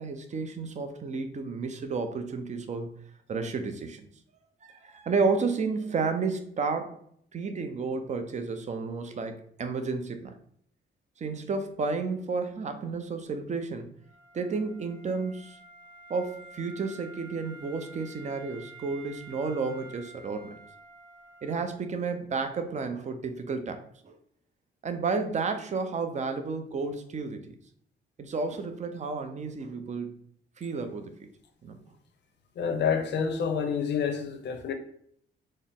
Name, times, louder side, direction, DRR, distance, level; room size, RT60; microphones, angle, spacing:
voice 1, 0.0-2.9 3.3-4.1 4.6-7.0 7.3-10.4 11.2-13.9 14.3-15.6 16.1-20.6 21.4-24.2 24.8-27.6 28.2-30.2 30.6-31.1 31.6-31.8, right 4 dB, 35° right, 0.6 m, -32 dB
Wind instrument woodwind instrument, 14.0-21.8, right 3 dB, 65° right, 1.5 m, -50 dB
voice 2, 32.6-34.7, left 6 dB, 60° left, 0.7 m, -28 dB
4.2 x 2.0 x 3.6 m
cardioid pair, 90°, 20 cm